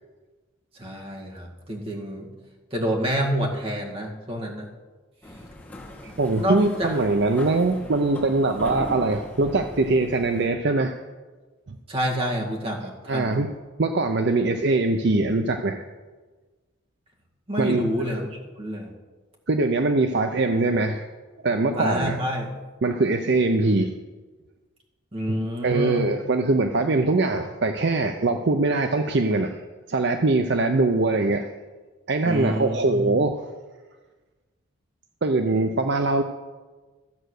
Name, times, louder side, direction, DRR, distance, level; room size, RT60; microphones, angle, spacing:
voice 1, 0.8-2.3 2.7-4.7 6.1-6.9 11.9-13.3 17.5-18.3 18.6-18.9 21.8-22.5 25.1-26.0 32.2-33.1, equal, 30° right, -1 dB, 2.0 m, -28 dB
sound 1, 5.2-10.5, left 1 dB, 10° left, 2.3 m, -39 dB
voice 2, 6.0-11.0 11.7-11.8 13.1-13.5 13.8-15.8 17.6-17.8 18.1-18.2 19.5-21.1 21.4-22.2 22.8-23.9 25.3-29.6 29.9-31.5 32.1-33.4 35.2-36.2, right 2 dB, 55° right, 6 dB, 0.6 m, -22 dB
13.5 x 7.9 x 6.5 m, 1.3 s
head